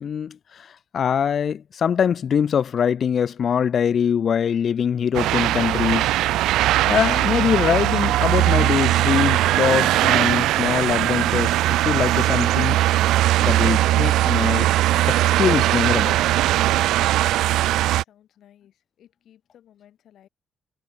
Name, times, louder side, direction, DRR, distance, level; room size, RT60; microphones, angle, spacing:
voice 1, 0.0-6.2 6.9-11.5 11.8-12.8 13.4-14.7 15.1-16.1, left 7 dB, 55° left, 0.7 m, -23 dB
sound 1, 5.1-18.0, right 15 dB, 90° right, 0.7 m, -20 dB
voice 2, 16.5-20.3, left 11 dB, 70° left, 6.7 m, -55 dB
cardioid pair, 90°, 0 cm